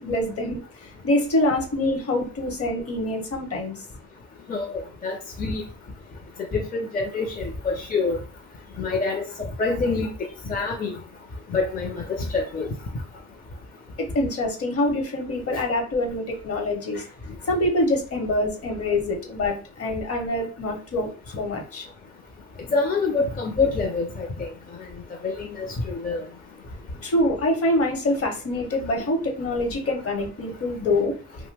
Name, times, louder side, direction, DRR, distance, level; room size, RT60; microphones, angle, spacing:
voice 1, 0.0-3.8 14.0-17.0 17.5-21.8 27.0-31.2, left 1 dB, 50° left, 3 dB, 1.1 m, -25 dB
voice 2, 4.5-5.6 6.5-8.2 8.8-10.1 10.5-11.0 11.5-12.7 22.7-24.5 25.2-26.2, left 4 dB, 30° left, 1 dB, 0.6 m, -26 dB
2.7 x 2.1 x 3.3 m, 0.38 s
cardioid pair, 90°, 30 cm